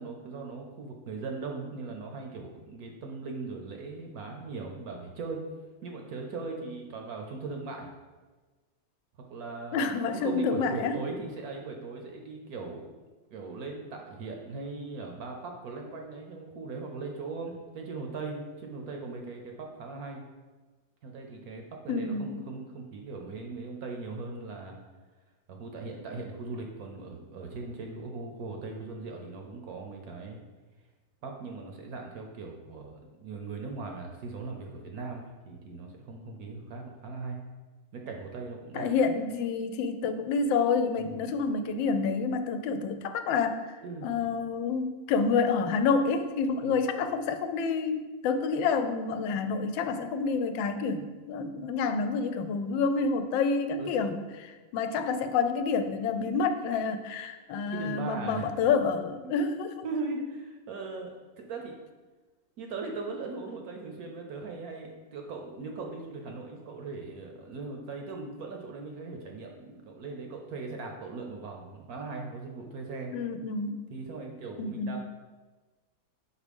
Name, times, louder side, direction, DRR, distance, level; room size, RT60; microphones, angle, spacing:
voice 1, 0.0-5.4 5.8-7.9 9.3-12.8 13.3-20.2 21.0-24.7 25.5-30.4 31.2-37.4 37.9-38.9 41.0-41.2 43.8-44.3 46.6-46.8 53.8-54.1 57.7-58.5 59.2-59.3 59.8-61.8 62.6-73.1 73.9-75.0, right 3 dB, 65° right, 2 dB, 1.0 m, -39 dB
voice 2, 9.7-10.9 21.9-22.4 38.7-43.7 44.0-59.8 73.1-73.8 74.6-75.0, left 5 dB, 90° left, 8 dB, 1.3 m, -28 dB
4.9 x 4.1 x 5.2 m, 1.3 s
omnidirectional pair, 2.0 m